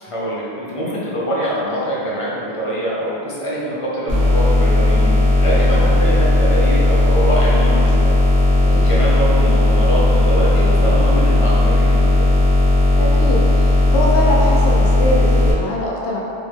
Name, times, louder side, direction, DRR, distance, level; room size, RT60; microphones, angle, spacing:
voice 1, 0.0-8.1 8.7-12.2, equal, 35° left, -6 dB, 0.7 m, -24 dB
sound 1, 4.1-15.5, left 1 dB, 65° right, 1.4 m, -15 dB
voice 2, 8.6-8.9 13.0-16.2, left 1 dB, 85° left, -3 dB, 0.9 m, -22 dB
4.4 x 2.1 x 3.2 m, 2.7 s
omnidirectional pair, 1.1 m